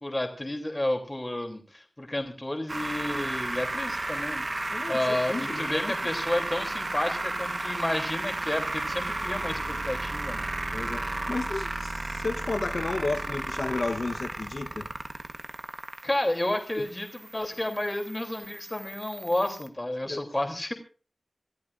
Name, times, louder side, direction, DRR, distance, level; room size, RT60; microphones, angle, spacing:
voice 1, 0.0-4.5 4.9-10.4 16.0-20.7, left 1 dB, 30° left, 3.1 m, -31 dB
sound 1, 2.7-19.7, right 2 dB, 50° right, 1.2 m, -34 dB
voice 2, 4.7-5.9 10.7-14.9 16.8-16.9 20.1-20.2, left 3 dB, 80° left, 1.1 m, -33 dB
27.5 x 13.5 x 2.6 m
wide cardioid pair, 70°, 0 cm